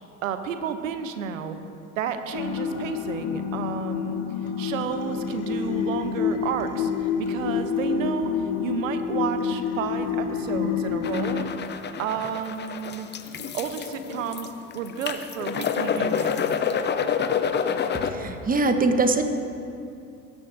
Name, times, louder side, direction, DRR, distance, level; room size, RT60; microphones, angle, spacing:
voice 1, 0.2-1.6 2.0-11.4 12.0-13.1 13.5-16.4, right 7 dB, 85° right, 9 dB, 0.9 m, -31 dB
sound 1, 2.3-11.4, left 7 dB, 65° left, 1.5 m, -28 dB
sound 2, 11.0-18.1, left 7 dB, 25° left, 0.7 m, -28 dB
voice 2, 18.0-19.2, right 3 dB, 20° right, 7 dB, 1.0 m, -22 dB
18.5 x 9.7 x 2.6 m, 2.5 s
hypercardioid pair, 70°, 39 cm